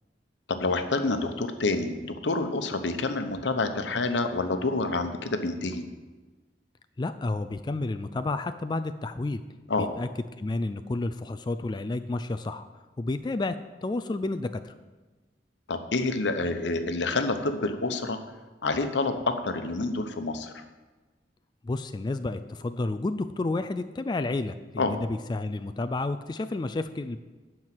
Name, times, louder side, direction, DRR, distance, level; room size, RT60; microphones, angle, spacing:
voice 1, 0.5-5.8 9.7-9.9 15.7-18.2 18.6-20.6 24.8-24.9, left 3 dB, 90° left, 8 dB, 0.9 m, -28 dB
voice 2, 7.0-9.4 9.8-10.1 10.4-12.7 13.0-13.6 13.8-14.7 21.6-27.2, left 2 dB, 25° left, 10 dB, 0.3 m, -30 dB
12.0 x 4.6 x 7.6 m, 1.2 s
head